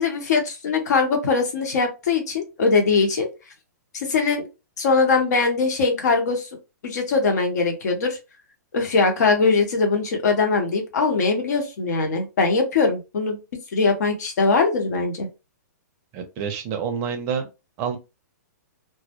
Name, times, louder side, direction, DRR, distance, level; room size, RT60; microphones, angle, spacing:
voice 1, 0.0-3.3 3.9-4.5 4.8-6.5 6.8-8.2 8.7-13.4 13.7-15.3, left 4 dB, 65° left, 4 dB, 0.9 m, -21 dB
voice 2, 16.1-17.5 17.8-18.0, right 7 dB, 25° right, 6 dB, 0.5 m, -27 dB
2.2 x 2.0 x 2.8 m, 0.27 s
hypercardioid pair, 160°, 10 cm